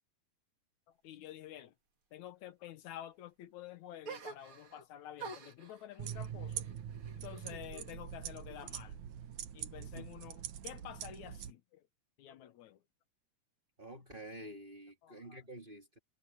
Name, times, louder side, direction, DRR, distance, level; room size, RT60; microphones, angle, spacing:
voice 1, 0.9-1.7 2.1-6.7 7.2-9.0 9.5-11.9 12.2-12.8 15.0-15.4, left 12 dB, 75° left, 2.3 m, -50 dB
sound 1, 4.0-4.8 5.2-7.9 8.2-9.1, right 4 dB, 45° right, 3.2 m, -50 dB
sound 2, 6.0-11.5, right 10 dB, 75° right, 2.6 m, -44 dB
voice 2, 9.8-10.1 13.8-16.0, right 1 dB, 20° right, 2.5 m, -49 dB
omnidirectional pair, 3.4 m